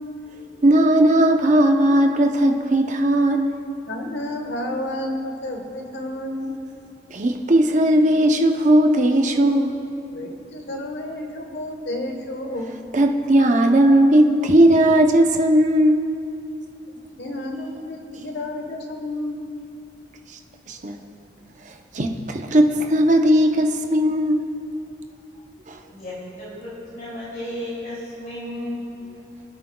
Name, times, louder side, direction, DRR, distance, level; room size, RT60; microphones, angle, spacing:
voice 1, 0.6-3.5 7.1-9.7 12.9-16.1 20.7-21.0 21.9-24.4 25.7-25.8, right 1 dB, 40° right, 4 dB, 0.7 m, -17 dB
voice 2, 3.9-6.5 10.1-12.7 17.2-19.4, left 1 dB, 70° left, 3 dB, 1.2 m, -31 dB
voice 3, 25.9-28.8, left 1 dB, 45° left, -7 dB, 2.7 m, -33 dB
24.0 x 8.4 x 2.3 m, 2.7 s
head